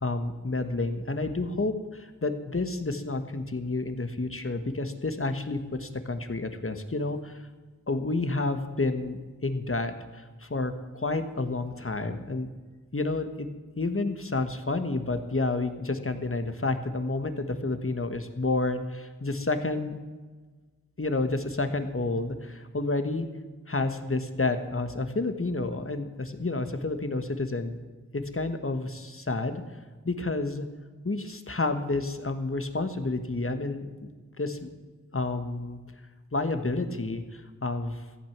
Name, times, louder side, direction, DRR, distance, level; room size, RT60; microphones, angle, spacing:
voice 1, 0.0-7.4 7.9-12.5 12.9-13.5 13.8-20.0 21.0-23.3 23.7-27.8 28.1-29.6 30.0-30.7 31.0-34.1 34.4-34.7 35.1-35.8 36.3-38.2, left 2 dB, 40° left, 8 dB, 1.4 m, -30 dB
14.5 x 8.9 x 7.3 m, 1.3 s
wide cardioid pair, 55°, 32 cm